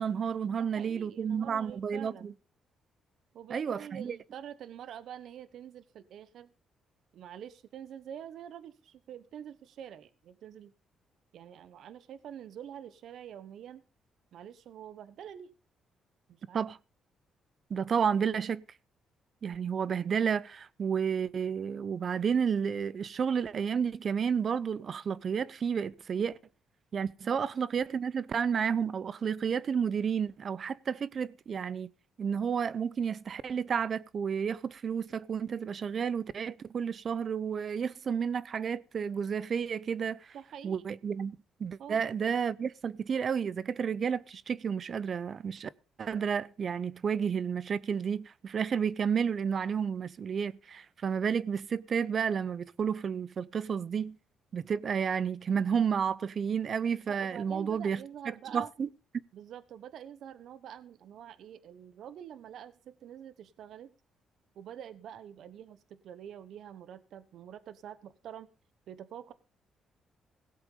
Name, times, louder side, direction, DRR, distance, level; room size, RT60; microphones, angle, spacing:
voice 1, 0.0-2.3 3.5-4.2 16.5-16.8 17.7-18.6 19.4-26.4 26.9-31.9 32.2-40.3 40.6-45.7 46.0-54.2 54.5-58.0 58.5-58.9, right 7 dB, 50° right, 0.7 m, -31 dB
voice 2, 0.6-2.4 3.3-6.5 7.1-10.7 11.3-13.8 14.3-15.5 16.3-16.6 27.3-27.4 40.3-40.9 41.8-42.0 57.1-58.7 59.3-63.9 64.5-68.5 68.9-69.3, right 9 dB, 70° right, 1.1 m, -46 dB
17.0 x 7.8 x 5.4 m
cardioid pair, 90°, 0 cm